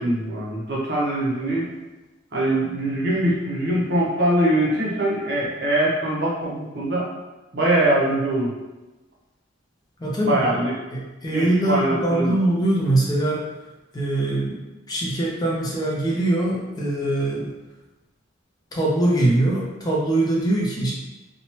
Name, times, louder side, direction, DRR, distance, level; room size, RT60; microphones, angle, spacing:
voice 1, 0.0-1.6 2.3-7.1 7.5-8.5 10.2-10.8 11.3-12.4, right 1 dB, 55° right, -5 dB, 0.7 m, -22 dB
voice 2, 10.0-10.6 10.9-13.5 13.9-17.5 18.7-20.9, right 1 dB, 20° left, -4 dB, 0.4 m, -22 dB
2.9 x 2.1 x 2.8 m, 1.1 s
head